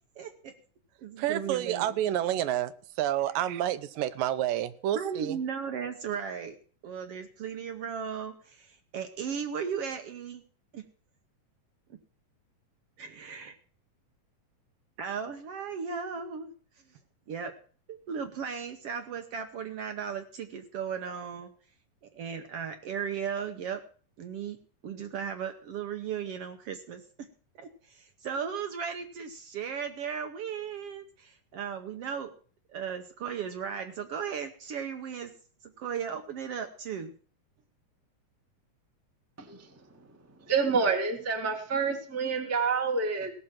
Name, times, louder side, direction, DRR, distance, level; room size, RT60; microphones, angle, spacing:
voice 1, 0.1-0.5 1.0-1.9 4.9-6.6 6.8-10.4 10.7-10.8 11.9-12.0 13.0-13.5 15.0-17.0 17.3-17.5 17.9-21.5 22.0-23.8 24.2-24.6 24.8-27.3 27.6-32.3 32.7-35.3 35.6-37.1, right 7 dB, 65° right, 7 dB, 1.5 m, -36 dB
voice 2, 1.2-5.4, right 12 dB, 85° right, 13 dB, 2.4 m, -29 dB
voice 3, 39.4-39.7 40.5-43.3, right 5 dB, 10° right, 3 dB, 0.9 m, -28 dB
17.0 x 6.7 x 7.4 m, 0.43 s
omnidirectional pair, 3.9 m